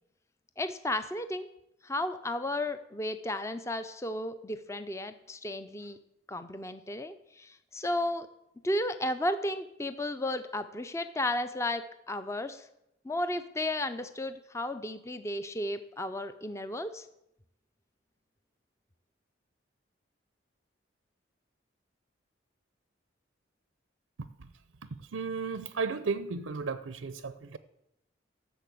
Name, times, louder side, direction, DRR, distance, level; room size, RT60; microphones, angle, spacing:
voice 1, 0.6-1.5 1.8-6.0 6.3-8.3 8.6-12.7 13.0-17.1, left 1 dB, 15° left, 0.5 m, -33 dB
voice 2, 25.1-27.6, right 4 dB, 90° right, 0.6 m, -34 dB
12.5 x 6.9 x 8.3 m
head